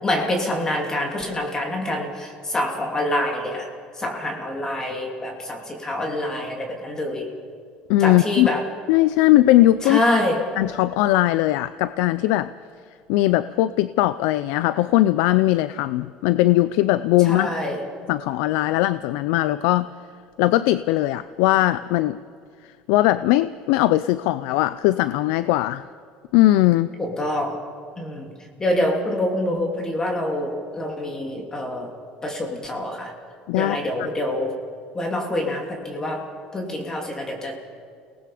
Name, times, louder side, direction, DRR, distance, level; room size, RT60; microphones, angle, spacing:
voice 1, 0.0-3.7 3.9-7.3 8.0-8.7 9.8-10.4 17.2-17.8 27.0-27.6 28.0-28.3 28.6-31.9 32.2-33.1 33.5-34.6 34.9-37.6, left 1 dB, 20° left, 2 dB, 3.0 m, -26 dB
voice 2, 7.9-8.5 8.9-10.0 10.6-12.5 13.1-17.5 18.1-19.9 20.4-22.2 22.9-25.8 26.3-26.9 33.5-33.8, left 16 dB, 85° left, 15 dB, 0.5 m, -19 dB
29.5 x 19.0 x 5.0 m, 2.3 s
cardioid pair, 120°, 3 cm